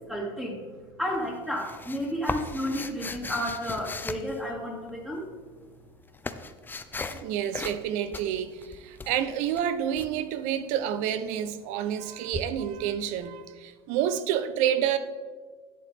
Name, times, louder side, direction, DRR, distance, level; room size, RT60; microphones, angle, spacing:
voice 1, 0.1-0.6 1.0-5.3, equal, 5° right, -3 dB, 2.5 m, -32 dB
sound 1, 1.1-5.0 5.7-7.3 7.5-7.9 8.1-10.1 12.3-12.4, left 4 dB, 15° left, 0.6 m, -37 dB
voice 2, 7.1-15.0, right 10 dB, 65° right, 12 dB, 0.8 m, -29 dB
11.0 x 8.3 x 3.6 m, 1.5 s
supercardioid pair, 100°, 13 cm